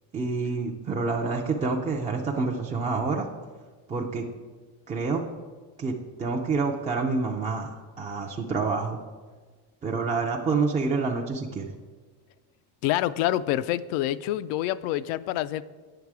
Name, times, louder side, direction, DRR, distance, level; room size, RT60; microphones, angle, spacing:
voice 1, 0.1-3.3 3.9-4.3 4.9-5.2 5.8-9.0 9.8-11.7, right 4 dB, 15° right, -1 dB, 0.3 m, -28 dB
voice 2, 12.8-15.6, left 14 dB, 85° left, 16 dB, 0.5 m, -27 dB
8.8 x 6.6 x 4.7 m, 1.4 s
cardioid pair, 145°, 48 cm